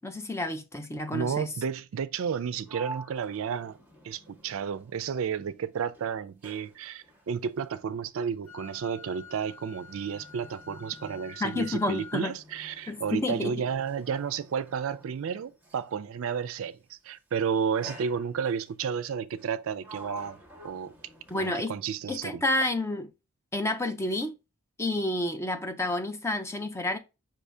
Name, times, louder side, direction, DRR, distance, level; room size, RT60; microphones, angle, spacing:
voice 1, 0.0-1.5 11.4-12.3 12.9-13.5 21.3-21.7 22.1-23.1 23.5-24.3 24.8-27.0, left 1 dB, 10° left, 0.5 m, -30 dB
voice 2, 1.1-3.8 4.0-20.9 21.3-22.4, right 7 dB, 65° right, 0.4 m, -32 dB
Sliding door, 2.2-5.5 5.8-16.0 16.9-17.2 17.8-18.7 19.3-21.8, right 1 dB, 5° right, 1.1 m, -49 dB
Wind instrument woodwind instrument, 8.5-12.3, left 6 dB, 80° left, 1.1 m, -48 dB
5.4 x 2.7 x 3.3 m
head